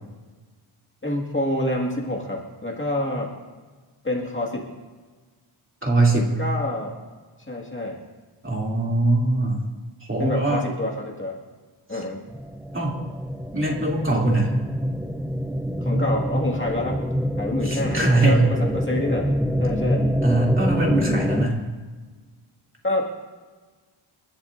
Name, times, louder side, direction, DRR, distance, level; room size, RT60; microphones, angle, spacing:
voice 1, 1.0-3.3 4.0-4.7 6.1-6.9 7.5-8.0 10.2-11.4 11.9-12.2 15.8-17.0 17.4-19.3 19.6-20.0 22.8-23.1, left 1 dB, 25° left, -2 dB, 2.0 m, -27 dB
voice 2, 5.8-6.3 8.4-9.6 10.1-10.6 12.7-12.9 13.5-14.5 17.6-18.5 20.2-21.6, right 2 dB, 25° right, -3 dB, 2.9 m, -21 dB
sound 1, 12.3-21.5, equal, 5° right, 0.5 m, -26 dB
29.5 x 12.0 x 2.6 m, 1.4 s
wide cardioid pair, 145°, 50 cm